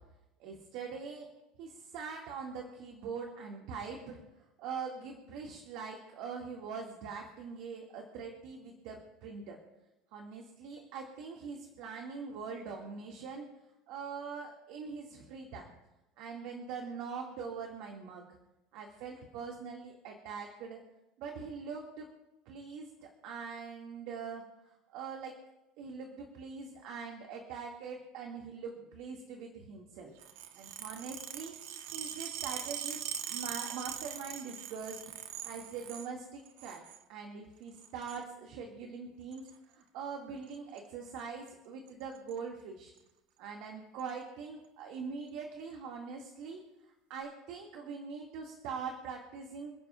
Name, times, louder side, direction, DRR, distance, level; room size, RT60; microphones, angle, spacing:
voice 1, 0.4-1.3 1.6-4.2 4.6-9.6 10.1-13.5 13.9-15.7 16.2-18.3 18.7-20.8 21.2-22.1 22.5-25.4 25.8-30.1 30.5-31.5 31.9-35.0 35.4-36.8 37.1-42.9 43.4-46.6 47.1-49.7, right 5 dB, 60° right, 0 dB, 2.1 m, -43 dB
sound 1, 30.2-36.1 36.4-37.0 37.7-38.2 39.3-39.5 40.5-40.8 41.1-41.2 41.5-41.6 41.9-42.3 43.0-43.1 44.0-44.1, right 10 dB, 85° right, 1.2 m, -42 dB
28.5 x 10.5 x 2.5 m, 0.96 s
cardioid pair, 165°, 0 cm